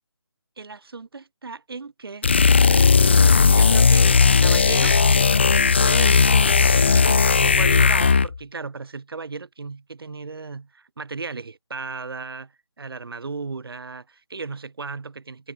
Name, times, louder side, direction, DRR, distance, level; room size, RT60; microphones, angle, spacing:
voice 1, 0.6-2.3 2.7-5.0 5.8-15.5, right 4 dB, 50° right, 7.6 m, -35 dB
sound 1, 2.2-8.4, left 5 dB, 25° left, 0.4 m, -16 dB
figure-of-eight pair, 160°, 15 cm